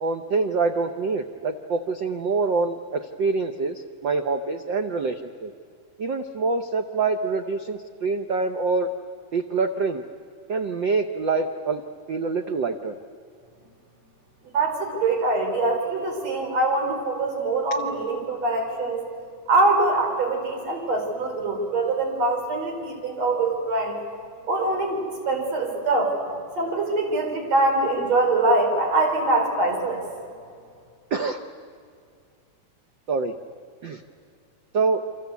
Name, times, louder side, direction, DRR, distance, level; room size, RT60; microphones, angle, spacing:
voice 1, 0.0-5.5 6.0-8.9 9.3-10.0 10.5-11.8 12.1-13.0 31.1-31.4 33.1-33.4 33.8-34.0 34.7-35.0, right 4 dB, 85° right, 7 dB, 1.0 m, -25 dB
voice 2, 14.5-19.0 19.5-24.0 24.5-26.1 26.6-30.0, right 2 dB, 55° right, 2 dB, 5.5 m, -23 dB
28.5 x 25.0 x 8.3 m, 2.3 s
omnidirectional pair, 3.6 m